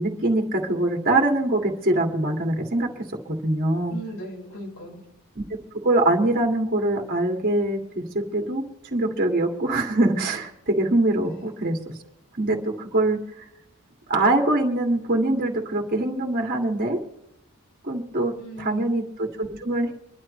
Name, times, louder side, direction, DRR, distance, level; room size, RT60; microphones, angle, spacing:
voice 1, 0.0-3.0 3.4-4.0 5.4-5.5 5.8-7.8 8.1-8.6 8.9-11.8 12.4-13.5 14.1-17.0 17.8-19.9, right 2 dB, 40° right, 1 dB, 2.4 m, -23 dB
voice 2, 3.9-5.0 11.2-11.5 18.4-18.9, equal, 90° left, -4 dB, 5.2 m, -38 dB
27.0 x 12.0 x 3.3 m, 0.82 s
head